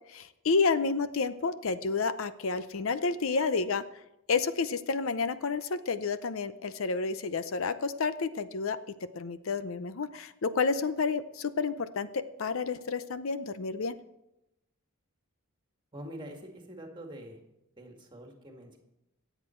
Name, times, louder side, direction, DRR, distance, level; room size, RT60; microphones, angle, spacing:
voice 1, 0.1-3.8 4.3-8.8 9.1-14.0, left 4 dB, 70° left, 13 dB, 0.6 m, -30 dB
voice 2, 15.9-17.4 17.8-18.8, equal, 20° right, 2 dB, 2.0 m, -45 dB
23.5 x 8.2 x 4.5 m, 0.88 s
head